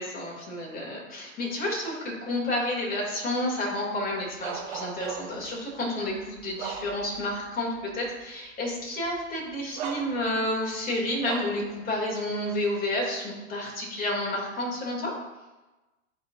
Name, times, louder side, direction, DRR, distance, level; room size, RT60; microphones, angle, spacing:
voice 1, 0.0-15.1, left 1 dB, 20° left, -3 dB, 2.7 m, -30 dB
Bark, 4.4-5.5 6.1-7.3 7.8-7.9 9.1-9.2 9.8-10.5 11.2-11.7, right 7 dB, 40° right, 1.1 m, -37 dB
12.0 x 4.9 x 2.6 m, 1.1 s
hypercardioid pair, 115°, 40 cm